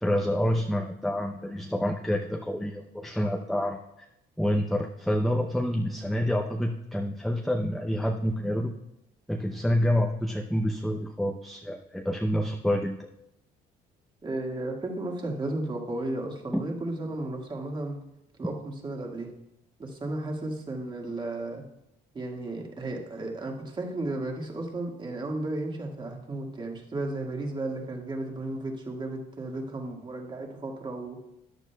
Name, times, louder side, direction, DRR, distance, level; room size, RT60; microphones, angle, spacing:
voice 1, 0.0-4.1 4.4-8.7 9.3-13.0 16.5-16.6, equal, ahead, 2 dB, 0.6 m, -28 dB
voice 2, 14.2-18.0 18.4-19.3 19.8-21.6 22.1-31.2, right 2 dB, 30° right, 1 dB, 1.8 m, -34 dB
13.5 x 9.6 x 2.3 m, 0.84 s
cardioid pair, 110°, 17 cm